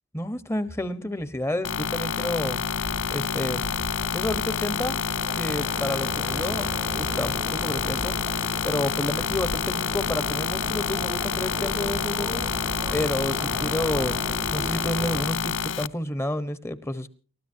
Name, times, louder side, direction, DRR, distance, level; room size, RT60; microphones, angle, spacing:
voice 1, 0.1-2.6 3.1-3.6 4.1-5.0 5.4-8.2 8.6-12.5 12.9-14.2 14.5-17.1, left 1 dB, 10° left, 1.1 m, -30 dB
sound 1, 1.6-15.9, left 7 dB, 60° left, 0.6 m, -28 dB
sound 2, 2.3-15.3, right 1 dB, 10° right, 0.8 m, -37 dB
29.5 x 13.5 x 2.8 m
head